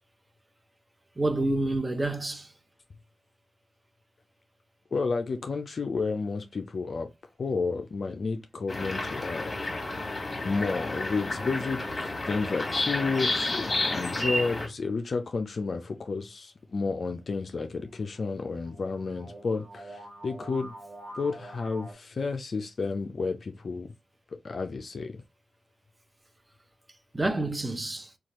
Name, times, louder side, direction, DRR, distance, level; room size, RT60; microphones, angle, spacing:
voice 1, 1.2-2.5 27.1-28.1, right 2 dB, 25° right, 0.5 m, -28 dB
voice 2, 4.9-7.1 7.4-9.5 9.8-10.2 10.4-20.7 21.2-23.9 24.4-25.2, left 4 dB, 60° left, 0.3 m, -31 dB
sound 1, 8.7-14.7, left 2 dB, 35° left, 1.1 m, -31 dB
sound 2, 16.6-21.9, right 1 dB, 45° right, 1.3 m, -47 dB
2.7 x 2.3 x 2.9 m
supercardioid pair, 45°, 0 cm